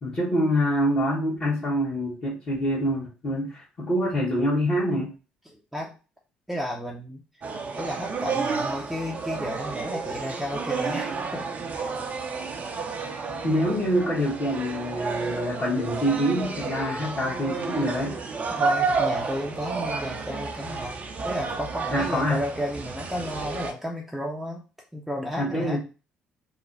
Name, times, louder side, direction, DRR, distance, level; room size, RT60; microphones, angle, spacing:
voice 1, 0.0-5.1 13.4-18.2 21.9-22.4 25.4-25.8, equal, 45° left, -8 dB, 1.5 m, -25 dB
voice 2, 5.5-6.0 6.5-7.2 7.8-11.5 11.8-11.9 18.5-24.6 24.9-25.8, equal, ahead, -1 dB, 0.7 m, -33 dB
sound 1, 7.4-23.7, right 4 dB, 40° right, 0.6 m, -31 dB
3.3 x 2.2 x 4.0 m, 0.33 s
hypercardioid pair, 55°, 4 cm